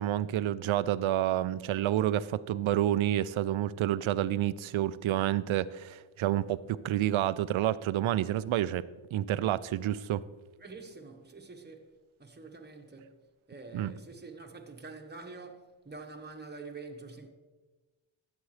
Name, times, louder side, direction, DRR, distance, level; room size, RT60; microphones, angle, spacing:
voice 1, 0.0-8.8 9.1-10.2 13.7-13.9, right 12 dB, 70° right, 0.6 m, -29 dB
voice 2, 10.6-11.9 12.2-13.2 13.5-17.3, right 3 dB, 20° right, 1.3 m, -46 dB
13.0 x 8.4 x 3.3 m
cardioid pair, 65°, 49 cm